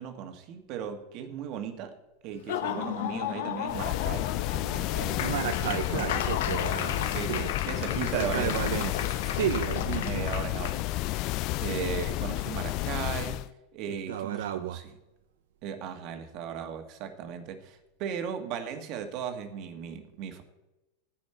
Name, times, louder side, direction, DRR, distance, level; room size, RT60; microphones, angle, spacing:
voice 1, 0.0-2.0 2.2-6.3 7.1-9.0 9.8-11.3 11.6-13.5 13.7-15.0 15.6-20.4, right 8 dB, 50° right, 6 dB, 1.6 m, -37 dB
Laughter / Applause, 2.3-10.8, left 10 dB, 70° left, 0.8 m, -34 dB
sound 1, 3.7-13.5, left 18 dB, 50° left, 0.3 m, -31 dB
sound 2, 4.3-13.6 14.1-14.5, right 2 dB, 10° right, 2.0 m, -58 dB
voice 2, 5.2-7.5 7.9-10.3 14.1-14.8, right 10 dB, 85° right, 8 dB, 0.6 m, -33 dB
14.5 x 10.0 x 4.4 m, 1.0 s
supercardioid pair, 130°, 0 cm